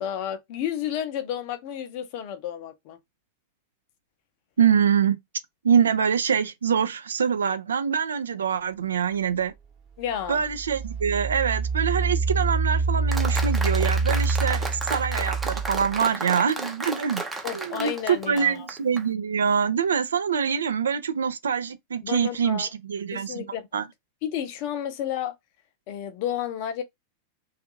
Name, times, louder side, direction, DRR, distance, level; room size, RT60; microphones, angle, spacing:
voice 1, 0.0-3.0 10.0-10.4 17.4-18.7 22.0-22.7 23.1-23.7 24.2-25.3 25.9-26.8, left 10 dB, 45° left, 0.6 m, -31 dB
voice 2, 4.6-5.2 5.6-9.5 10.3-17.2 17.5-23.4 23.7-23.9, right 7 dB, 70° right, 0.4 m, -24 dB
Engine, 9.4-9.5 10.1-16.1, right 4 dB, 30° right, 1.0 m, -26 dB
Applause, 13.1-19.0, right 3 dB, 10° right, 0.6 m, -33 dB
2.6 x 2.4 x 2.5 m
figure-of-eight pair, 90°, 0 cm